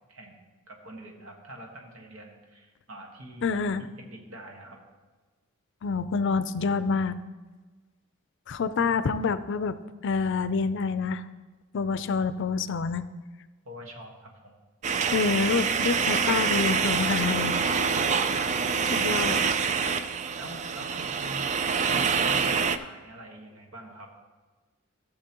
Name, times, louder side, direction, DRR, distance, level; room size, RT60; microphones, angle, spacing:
voice 1, 0.1-4.8 13.6-14.5 18.3-19.3 20.4-21.6 21.9-24.1, right 1 dB, 80° right, 1 dB, 1.5 m, -45 dB
voice 2, 3.4-3.8 5.8-7.2 8.5-9.8 10.0-11.2 11.7-13.1 15.1-17.6 18.9-19.4, left 5 dB, 60° left, 13 dB, 0.4 m, -27 dB
sound 1, 14.8-22.8, right 5 dB, 35° right, 0.3 m, -26 dB
15.5 x 6.7 x 2.9 m, 1.3 s
head